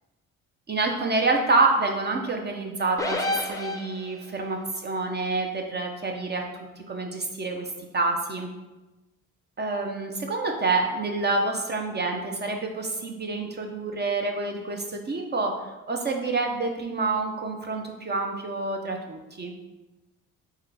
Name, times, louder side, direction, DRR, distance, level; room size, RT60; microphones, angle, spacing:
voice 1, 0.7-6.4 6.8-8.5 9.6-19.5, right 3 dB, 30° right, 2 dB, 0.6 m, -27 dB
sound 1, 3.0-4.4, left 2 dB, 10° left, 0.6 m, -29 dB
3.7 x 3.5 x 3.3 m, 1.1 s
supercardioid pair, 75°, 32 cm